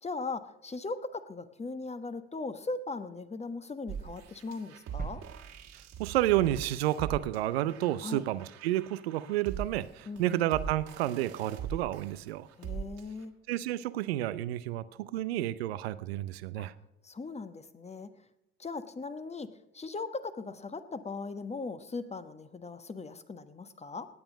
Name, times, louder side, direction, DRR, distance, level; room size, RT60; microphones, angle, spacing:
voice 1, 0.0-5.2 8.0-8.2 10.0-10.2 12.6-13.3 16.6-16.7 17.0-18.1 18.6-19.5 19.7-24.1, left 3 dB, 20° left, 11 dB, 1.2 m, -39 dB
sound 1, 3.9-13.2, right 7 dB, 60° right, 2.0 m, -42 dB
sound 2, 5.0-6.9 7.3-7.4, right 5 dB, 25° right, 1.4 m, -48 dB
voice 2, 6.0-12.5 13.5-16.7, right 14 dB, 80° right, 16 dB, 0.7 m, -30 dB
18.0 x 8.9 x 5.1 m, 0.90 s
hypercardioid pair, 55°, 30 cm